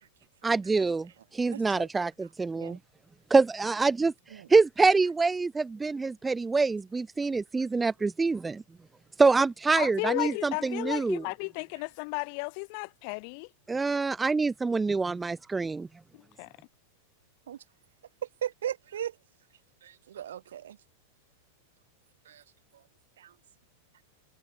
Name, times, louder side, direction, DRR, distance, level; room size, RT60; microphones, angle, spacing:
voice 1, 0.4-2.8 3.3-4.1 4.5-8.6 9.2-11.2 13.7-15.9, right 4 dB, 10° right, 0.5 m, -25 dB
voice 2, 1.2-1.9 2.5-2.8 4.3-4.5 17.5-17.6 18.4-19.2 19.8-20.8 22.2-22.4 22.7-22.8 23.2-23.3, right 10 dB, 60° right, 3.2 m, -38 dB
voice 3, 9.8-13.5 16.4-16.5, left 40 dB or more, 45° left, 0.8 m, -34 dB
figure-of-eight pair, 90°, 0 cm